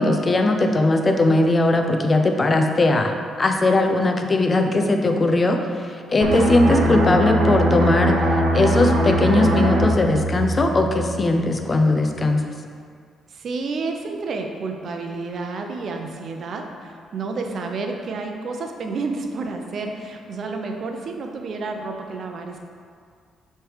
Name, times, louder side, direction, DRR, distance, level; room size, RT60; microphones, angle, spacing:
voice 1, 0.0-8.2 8.5-12.4, left 2 dB, 30° left, 5 dB, 0.6 m, -19 dB
voice 2, 6.2-6.6 13.3-22.6, right 3 dB, 55° right, 3 dB, 0.6 m, -30 dB
sound 1, 6.2-11.6 11.9-12.2, right 1 dB, 75° right, 0.9 m, -21 dB
6.1 x 3.4 x 5.0 m, 2.1 s
cardioid pair, 90°, 0 cm